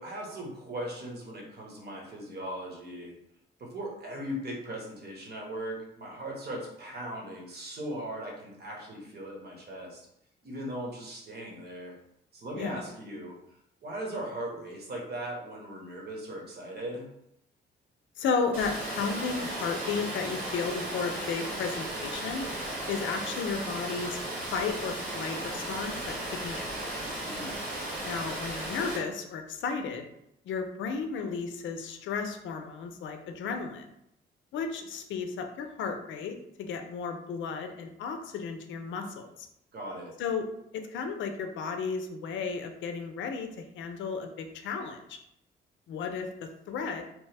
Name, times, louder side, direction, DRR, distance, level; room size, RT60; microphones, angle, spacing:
voice 1, 0.0-3.1 3.6-10.0 10.4-11.9 12.3-13.3 13.8-17.0 26.9-27.6 39.7-40.1, right 1 dB, 55° right, -1 dB, 1.1 m, -38 dB
voice 2, 18.2-22.5 22.9-24.2 24.5-26.7 28.0-30.1 30.5-33.9 34.5-39.5 40.2-40.5 40.7-45.2 45.9-47.1, left 5 dB, 70° left, 6 dB, 0.5 m, -34 dB
Water, 18.5-29.0, right 1 dB, 80° right, 1.3 m, -35 dB
3.0 x 2.1 x 3.3 m, 0.78 s
cardioid pair, 90°, 20 cm